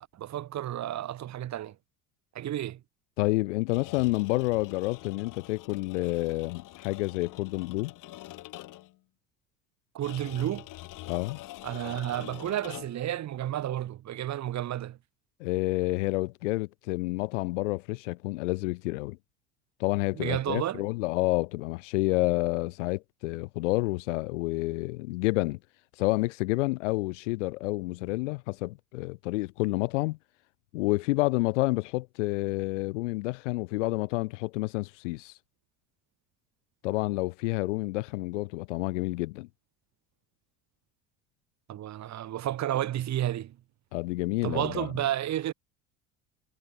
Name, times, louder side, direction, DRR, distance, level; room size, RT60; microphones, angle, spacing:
voice 1, 0.1-1.7 2.3-2.8 9.9-10.6 11.6-15.0 20.1-20.8 41.7-43.6 44.4-45.5, right 12 dB, 45° right, 2.8 m, -31 dB
voice 2, 3.2-7.9 11.1-11.4 15.4-19.2 19.8-25.6 26.0-30.2 30.7-35.3 36.8-39.5 43.9-44.9, left 22 dB, 75° left, 3.5 m, -29 dB
sound 1, 3.6-9.0 10.0-13.1, left 17 dB, 60° left, 4.1 m, -45 dB
hypercardioid pair, 75°, 37 cm